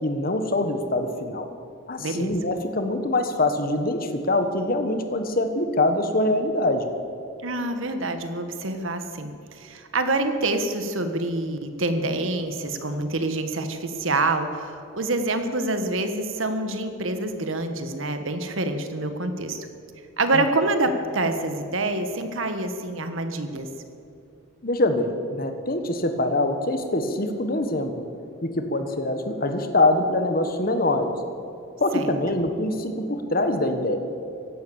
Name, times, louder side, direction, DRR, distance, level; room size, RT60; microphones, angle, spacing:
voice 1, 0.0-1.5 1.9-6.9 20.3-20.4 24.6-28.0 28.4-31.2 31.8-34.0, left 2 dB, 45° left, 7 dB, 1.4 m, -24 dB
voice 2, 2.0-2.3 7.4-19.7 20.2-23.7 31.9-32.1, right 2 dB, 75° right, 8 dB, 1.4 m, -26 dB
16.0 x 12.0 x 7.1 m, 2.8 s
head